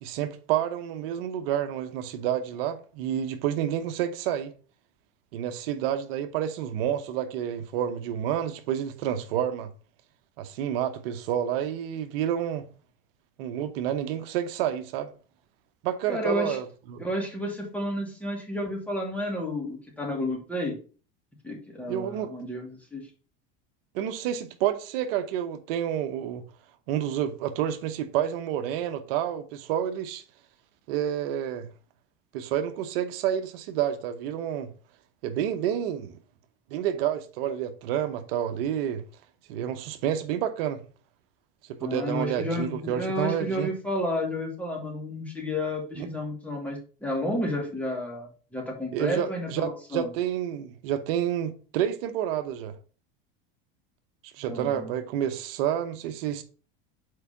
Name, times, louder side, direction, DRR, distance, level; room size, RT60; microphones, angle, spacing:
voice 1, 0.0-4.5 5.3-9.7 10.4-12.7 13.4-15.1 15.8-17.0 21.9-22.3 23.9-26.4 26.9-30.2 30.9-31.7 32.3-34.7 35.2-36.1 36.7-39.0 39.5-40.8 41.7-43.7 46.0-46.1 48.9-52.7 54.3-56.4, right 10 dB, 75° right, 0.9 m, -29 dB
voice 2, 16.1-16.6 17.0-20.7 21.4-23.0 41.8-50.1 54.5-54.9, left 1 dB, 5° left, 2.5 m, -31 dB
4.9 x 4.6 x 5.6 m
supercardioid pair, 110°, 29 cm